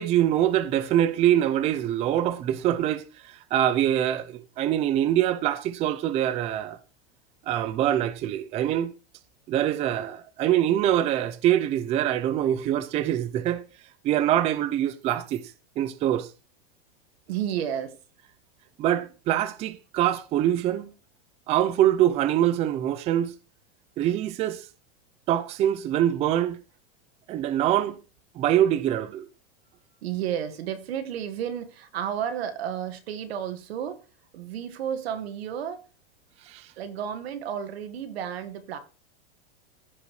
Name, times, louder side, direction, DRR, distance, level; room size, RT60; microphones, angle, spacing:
voice 1, 0.0-6.8 7.5-8.9 9.5-13.6 14.0-15.4 15.8-16.3 18.8-20.9 21.5-23.3 24.0-24.7 25.3-26.6 27.3-28.0 28.4-29.3 36.5-36.7, right 11 dB, 20° right, 0.5 m, -24 dB
voice 2, 17.3-18.0 30.0-34.0 34.3-35.8 36.8-38.8, right 9 dB, 80° right, 1.7 m, -32 dB
15.0 x 5.1 x 3.1 m
supercardioid pair, 155°, 31 cm